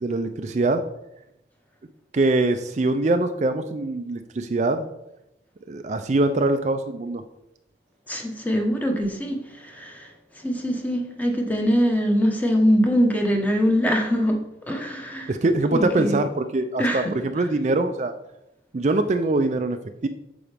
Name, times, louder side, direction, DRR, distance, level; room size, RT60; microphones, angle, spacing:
voice 1, 0.0-0.8 2.1-4.9 5.7-7.2 15.3-18.1 18.7-19.8 20.0-20.1, right 2 dB, 40° right, 8 dB, 0.4 m, -23 dB
voice 2, 8.1-10.1 10.4-14.4 14.7-15.3 15.7-16.2 16.8-17.1, equal, 10° left, 2 dB, 1.1 m, -23 dB
8.7 x 6.9 x 3.4 m, 0.88 s
head